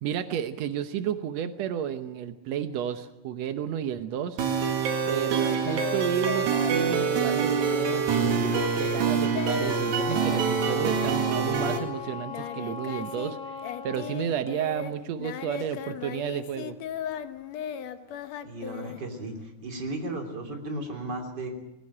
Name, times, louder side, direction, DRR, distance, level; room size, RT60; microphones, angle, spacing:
voice 1, 0.0-4.4 5.1-16.7, right 9 dB, 80° right, 10 dB, 1.5 m, -32 dB
sound 1, 4.4-11.8, right 6 dB, 55° right, 3.2 m, -26 dB
Singing, 5.4-13.3 13.6-19.5, left 9 dB, 70° left, 1.7 m, -38 dB
Wind instrument woodwind instrument, 9.9-14.3, left 5 dB, 40° left, 1.1 m, -39 dB
voice 2, 18.4-21.5, right 2 dB, 30° right, 3 dB, 3.4 m, -35 dB
20.5 x 17.0 x 9.8 m, 1.0 s
omnidirectional pair, 4.3 m